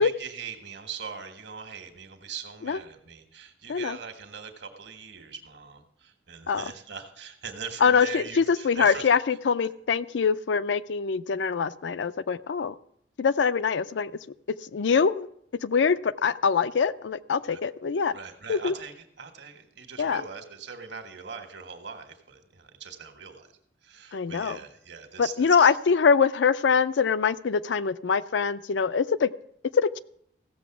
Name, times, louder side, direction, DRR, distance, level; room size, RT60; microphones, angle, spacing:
voice 1, 0.0-9.1 17.5-17.6 18.1-23.5 23.8-25.7, right 6 dB, 70° right, 7 dB, 1.6 m, -41 dB
voice 2, 7.8-12.8 13.2-14.1 14.7-15.3 15.6-18.1 18.5-18.7 20.0-20.2 24.1-24.6 25.2-29.3 29.8-30.0, left 6 dB, 85° left, 15 dB, 0.5 m, -24 dB
15.5 x 6.8 x 6.0 m, 0.69 s
head